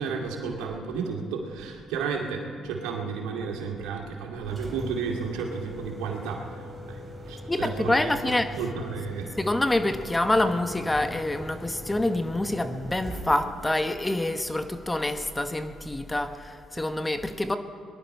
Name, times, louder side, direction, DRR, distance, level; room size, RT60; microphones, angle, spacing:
voice 1, 0.0-7.0 7.3-9.3, right 5 dB, 85° right, 1 dB, 2.3 m, -32 dB
Engine, 4.4-15.3, equal, 30° right, 3.2 m, -42 dB
voice 2, 7.5-8.5 9.4-17.6, left 1 dB, 15° left, 9 dB, 1.1 m, -26 dB
21.5 x 11.0 x 5.4 m, 2.3 s
supercardioid pair, 75°, 0 cm